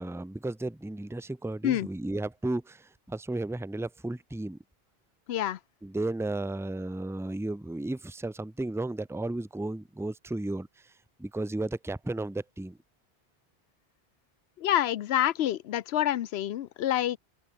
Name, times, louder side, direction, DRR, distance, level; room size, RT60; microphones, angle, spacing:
voice 1, 0.0-4.6 5.8-10.7 11.2-12.8, right 2 dB, 5° right, 0.7 m, -34 dB
voice 2, 5.3-5.6 14.6-17.2, left 12 dB, 85° left, 0.9 m, -27 dB
open air
omnidirectional pair, 1.0 m